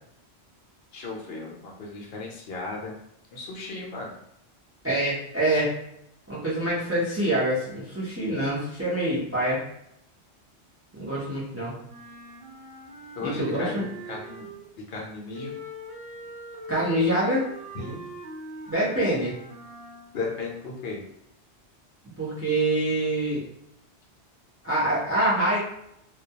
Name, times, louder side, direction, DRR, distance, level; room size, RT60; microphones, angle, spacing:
voice 1, 0.9-3.0 3.3-4.2 13.2-14.5 14.8-15.6 17.7-18.0 20.1-21.0, left 3 dB, 65° left, -1 dB, 0.8 m, -35 dB
voice 2, 4.8-5.7 6.3-9.6 10.9-11.7 13.2-13.8 16.7-17.5 18.7-19.3 22.2-23.4 24.6-25.6, right 1 dB, 15° right, -7 dB, 0.5 m, -25 dB
Wind instrument woodwind instrument, 11.8-14.8 15.3-20.2, equal, 65° right, 0.8 m, -42 dB
2.2 x 2.2 x 2.7 m, 0.77 s
omnidirectional pair, 1.1 m